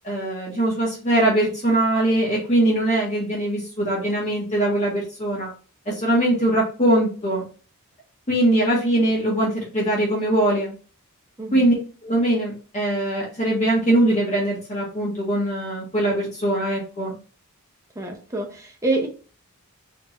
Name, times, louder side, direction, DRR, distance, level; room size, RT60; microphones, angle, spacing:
voice 1, 0.0-5.5 5.8-7.4 8.3-10.7 11.5-11.8 12.0-17.1, right 1 dB, 30° left, -6 dB, 1.6 m, -21 dB
voice 2, 11.4-11.7 18.0-19.1, right 2 dB, 15° right, 1 dB, 0.8 m, -26 dB
4.3 x 2.8 x 2.9 m, 0.37 s
head